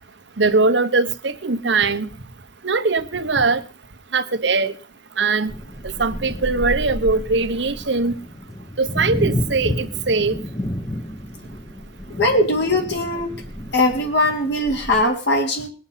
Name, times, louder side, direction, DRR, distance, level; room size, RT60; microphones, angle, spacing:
voice 1, 0.4-2.1 2.6-3.6 4.1-4.7 5.2-5.5 5.8-8.1 8.8-10.3, right 3 dB, 70° right, 1.1 m, -20 dB
sound 1, 5.5-15.0, equal, 20° left, 1.0 m, -31 dB
voice 2, 12.2-13.4 13.7-15.7, left 1 dB, 65° left, 3.2 m, -20 dB
20.5 x 7.1 x 5.7 m
head